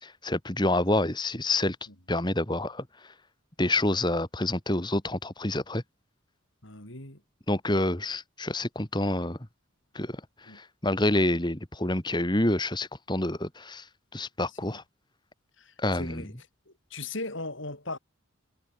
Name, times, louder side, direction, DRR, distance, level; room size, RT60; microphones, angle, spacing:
voice 1, 0.0-1.8 2.1-3.1 3.6-5.8 7.5-9.4 9.9-13.9 14.1-14.8 15.8-16.3, left 1 dB, 20° left, 2.0 m, -28 dB
voice 2, 6.6-7.2 10.5-10.6 14.6-14.8 15.6-16.3 16.7-18.0, left 2 dB, 65° left, 7.7 m, -38 dB
head